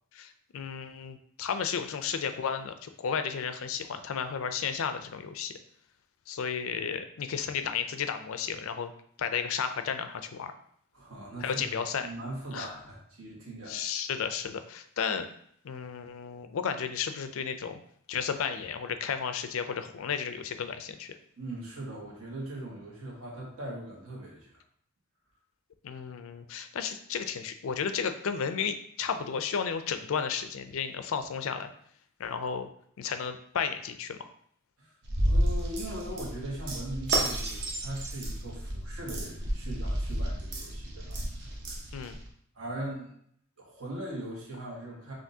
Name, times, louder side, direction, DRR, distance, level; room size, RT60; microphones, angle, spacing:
voice 1, 0.1-5.5 6.3-8.9 9.2-10.5 11.4-12.1 12.5-12.7 13.7-15.3 15.6-17.8 18.1-21.1 25.8-31.7 32.2-32.7 33.0-34.2 41.9-42.2, left 7 dB, 65° left, 9 dB, 0.4 m, -33 dB
voice 2, 10.9-11.7 12.0-13.8 21.4-24.5 34.8-34.9 35.3-41.2 42.5-43.1 43.6-45.1, right 1 dB, 75° right, -3 dB, 1.4 m, -40 dB
sound 1, 35.0-42.2, right 1 dB, 55° right, 0.8 m, -31 dB
5.8 x 2.6 x 2.7 m, 0.66 s
head